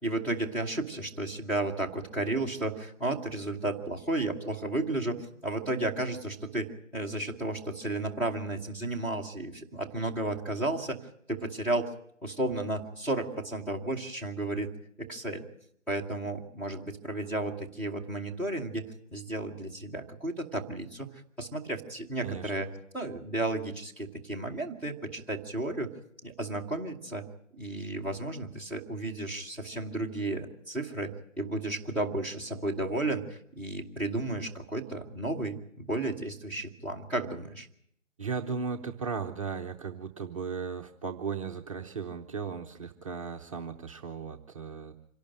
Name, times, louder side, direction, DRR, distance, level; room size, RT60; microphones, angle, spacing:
voice 1, 0.0-11.0 11.3-11.9 12.2-14.7 15.0-15.4 15.9-21.1 21.4-22.7 22.9-25.9 26.2-27.2 27.5-37.7, right 2 dB, 5° left, -5 dB, 1.2 m, -33 dB
voice 2, 38.2-44.9, right 5 dB, 25° right, 2 dB, 0.8 m, -36 dB
26.0 x 12.0 x 9.0 m, 0.71 s
figure-of-eight pair, 145°, 39 cm